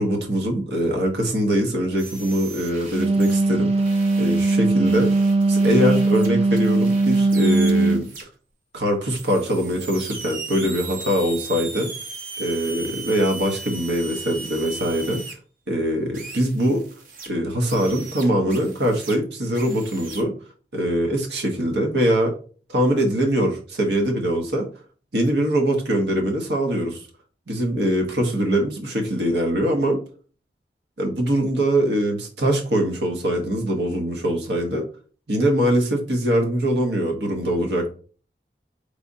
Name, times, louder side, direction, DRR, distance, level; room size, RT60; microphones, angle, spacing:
voice 1, 0.0-3.7 4.2-5.1 5.5-8.1 8.7-11.9 12.4-15.2 15.7-16.9 17.3-20.3 20.7-22.3 22.7-24.7 25.1-27.0 27.5-30.0 31.0-34.8 35.3-37.9, equal, 80° right, 2 dB, 1.1 m, -22 dB
sound 1, 2.0-3.4 3.8-8.2 9.1-15.3 16.1-17.3 17.7-19.2 19.5-20.2, right 4 dB, 50° right, 0.8 m, -38 dB
Wind instrument woodwind instrument, 2.8-8.1, right 2 dB, 35° right, 0.4 m, -19 dB
4.9 x 3.3 x 2.7 m, 0.40 s
head